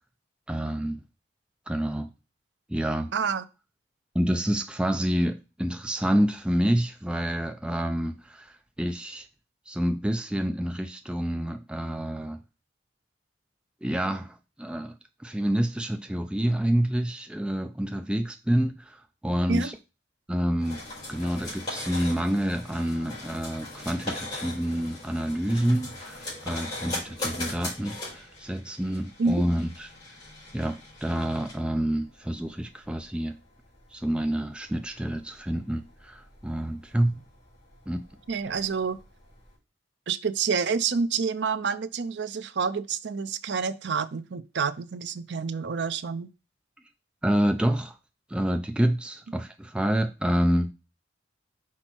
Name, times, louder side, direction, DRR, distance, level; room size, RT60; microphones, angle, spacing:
voice 1, 0.5-1.0 1.7-2.1 2.7-3.1 4.1-9.3 9.7-12.4 13.8-14.9 15.2-19.8 20.3-20.8 21.1-29.9 30.5-33.3 33.9-37.1 37.9-38.0 47.2-48.0 48.3-50.7, right 1 dB, 5° right, 0.3 m, -28 dB
voice 2, 3.1-3.4 19.5-19.7 29.2-29.4 38.3-39.0 40.1-46.3, right 5 dB, 70° right, 0.5 m, -28 dB
sound 1, 20.6-39.5, left 2 dB, 25° left, 4.0 m, -40 dB
5.9 x 4.4 x 4.4 m
head